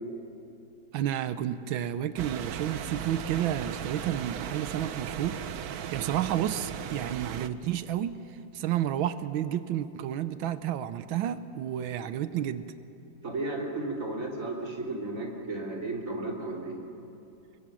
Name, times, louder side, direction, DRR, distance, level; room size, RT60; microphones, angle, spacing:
voice 1, 0.9-8.2 8.5-12.7, right 11 dB, 85° right, 12 dB, 1.5 m, -31 dB
sound 1, 2.2-7.5, right 9 dB, 60° right, 1.1 m, -37 dB
voice 2, 13.2-16.8, right 2 dB, 40° right, -1 dB, 3.5 m, -34 dB
28.5 x 23.0 x 6.2 m, 2.8 s
omnidirectional pair, 2.1 m